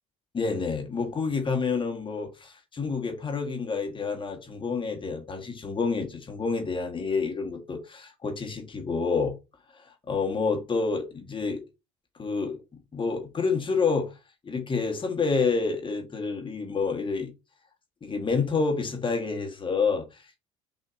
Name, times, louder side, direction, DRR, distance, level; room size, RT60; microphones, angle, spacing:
voice 1, 0.3-9.4 9.7-11.6 12.2-12.6 12.9-14.2 14.4-17.3 18.0-20.4, left 4 dB, 30° left, 1.3 m, -28 dB
5.5 x 2.8 x 2.5 m
hypercardioid pair, 70°, 16 cm